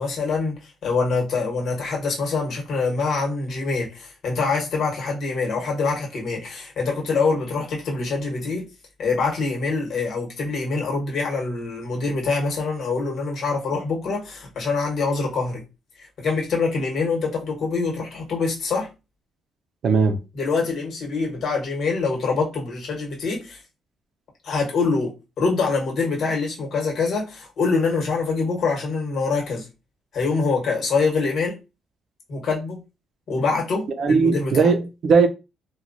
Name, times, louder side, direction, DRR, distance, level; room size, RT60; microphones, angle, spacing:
voice 1, 0.0-8.6 9.0-15.6 16.0-18.9 20.3-23.6 24.4-29.7 30.1-31.5 32.3-32.8 33.3-34.7, left 4 dB, 65° left, 1.2 m, -25 dB
voice 2, 19.8-20.2 34.0-35.3, right 5 dB, 65° right, 0.5 m, -18 dB
2.9 x 2.3 x 2.5 m
cardioid pair, 90°, 0 cm